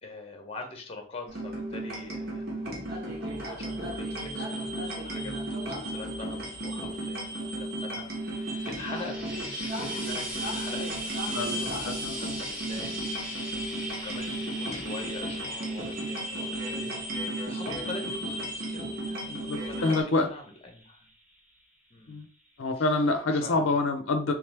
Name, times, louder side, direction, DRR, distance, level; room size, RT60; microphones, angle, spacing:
voice 1, 0.0-2.7 3.4-8.4 8.6-21.1 21.9-22.2 22.8-23.0 23.3-23.7, left 2 dB, 30° left, 4 dB, 0.8 m, -44 dB
sound 1, 1.3-20.0, right 1 dB, 50° right, 1.2 m, -34 dB
Frying (food), 8.1-21.5 22.5-22.6, equal, 5° right, 1.0 m, -42 dB
voice 2, 11.3-12.4 19.3-20.3 22.1-22.3 22.6-24.3, left 2 dB, 70° left, 5 dB, 0.5 m, -27 dB
3.4 x 3.3 x 3.3 m, 0.41 s
head